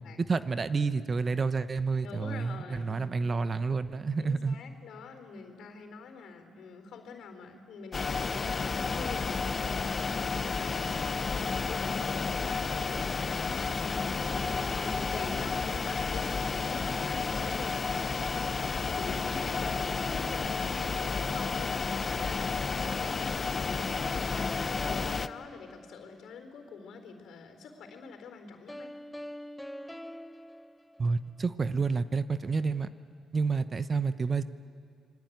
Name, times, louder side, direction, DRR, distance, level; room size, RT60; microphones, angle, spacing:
voice 1, 0.3-4.5 31.0-32.9 33.3-34.4, right 4 dB, 35° right, 12 dB, 1.0 m, -29 dB
voice 2, 2.0-3.2 4.2-28.9, left 5 dB, 75° left, 6 dB, 4.1 m, -46 dB
sound 1, 7.9-25.3, left 4 dB, 35° left, 0.8 m, -31 dB
sound 2, 14.3-16.4 19.1-21.5 23.9-26.4 28.7-31.5, left 1 dB, 5° left, 0.8 m, -45 dB
25.5 x 23.0 x 9.4 m, 2.3 s
cardioid pair, 90°, 0 cm